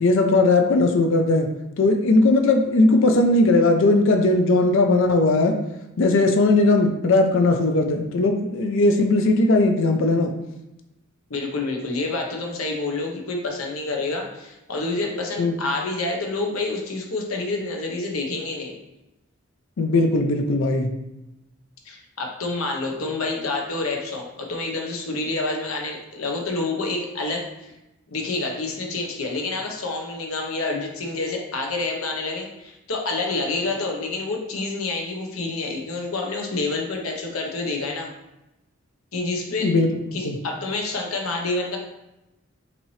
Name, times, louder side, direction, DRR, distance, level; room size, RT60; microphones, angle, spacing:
voice 1, 0.0-1.5 1.8-5.6 6.0-10.3 15.4-15.5 19.8-20.9 39.6-39.9 40.2-40.4, left 2 dB, 65° left, 5 dB, 0.5 m, -18 dB
voice 2, 11.3-18.8 21.9-27.7 28.1-38.1 39.1-39.7 40.1-41.8, left 3 dB, 85° left, 1 dB, 0.9 m, -28 dB
5.8 x 2.7 x 3.2 m, 0.93 s
head